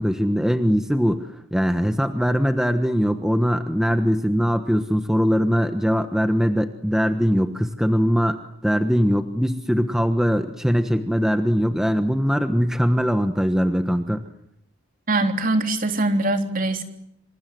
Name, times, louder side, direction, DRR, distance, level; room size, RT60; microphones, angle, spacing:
voice 1, 0.0-14.2, equal, 5° right, 7 dB, 1.2 m, -21 dB
voice 2, 15.1-16.8, right 2 dB, 45° right, 5 dB, 3.5 m, -22 dB
27.0 x 26.5 x 7.8 m, 0.78 s
head